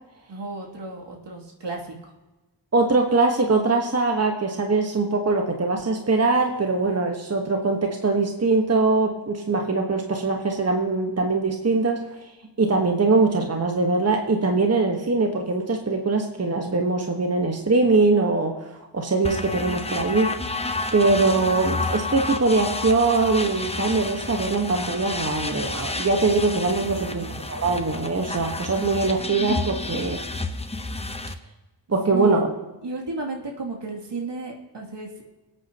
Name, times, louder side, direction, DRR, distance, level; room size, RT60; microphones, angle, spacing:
voice 1, 0.3-2.1 26.8-27.5 32.1-35.3, right 3 dB, 70° right, -1 dB, 2.7 m, -34 dB
voice 2, 2.7-12.0 12.6-20.5 20.9-30.4 31.9-32.5, right 3 dB, 35° right, 2 dB, 1.4 m, -22 dB
sound 1, 19.2-31.3, left 3 dB, 15° left, 0.8 m, -30 dB
23.0 x 8.8 x 2.9 m, 1.1 s
cardioid pair, 65°, 44 cm